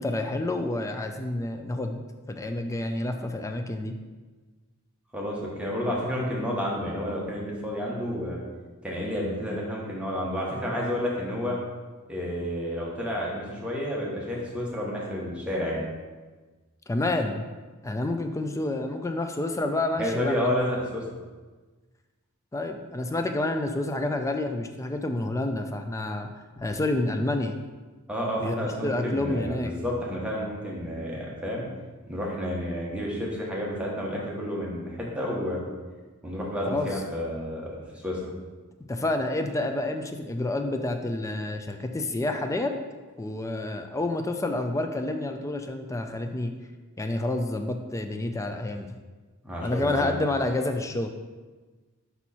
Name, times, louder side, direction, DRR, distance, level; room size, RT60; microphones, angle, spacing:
voice 1, 0.0-3.9 16.9-17.4 17.8-20.5 22.5-26.3 26.6-27.6 28.4-29.7 36.7-37.0 38.9-42.7 43.2-46.5 47.0-48.9 49.6-51.1, left 2 dB, 15° left, 5 dB, 0.4 m, -29 dB
voice 2, 5.1-8.4 8.8-11.5 12.1-15.9 20.0-21.0 28.1-31.6 32.1-35.6 36.2-37.6 38.0-38.3 49.4-50.2, equal, 5° right, -4 dB, 1.1 m, -30 dB
5.5 x 4.4 x 4.2 m, 1.3 s
head